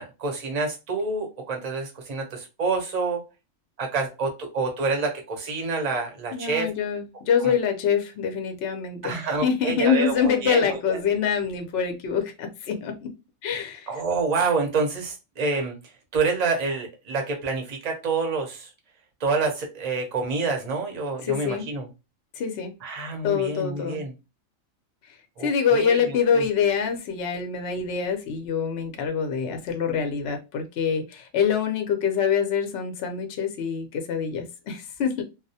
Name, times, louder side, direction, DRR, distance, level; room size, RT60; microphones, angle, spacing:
voice 1, 0.0-3.2 3.8-6.7 7.4-7.5 9.0-11.0 13.9-15.8 16.1-18.7 19.2-21.9 22.8-24.1 25.4-26.4, right 4 dB, 40° right, 2 dB, 0.6 m, -27 dB
voice 2, 6.3-13.1 13.4-13.9 21.2-21.7 22.4-22.7 23.2-24.0 25.4-35.2, left 7 dB, 65° left, 5 dB, 0.7 m, -25 dB
2.3 x 2.1 x 2.6 m, 0.27 s
omnidirectional pair, 1.4 m